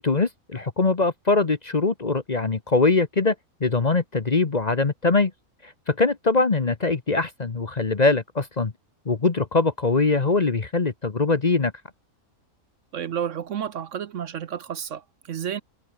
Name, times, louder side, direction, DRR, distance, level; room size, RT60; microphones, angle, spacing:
voice 1, 0.0-3.3 3.6-5.3 5.6-8.7 9.1-11.7, left 3 dB, 30° left, 1.1 m, -22 dB
voice 2, 12.9-15.6, right 9 dB, 60° right, 1.1 m, -31 dB
omnidirectional pair, 1.5 m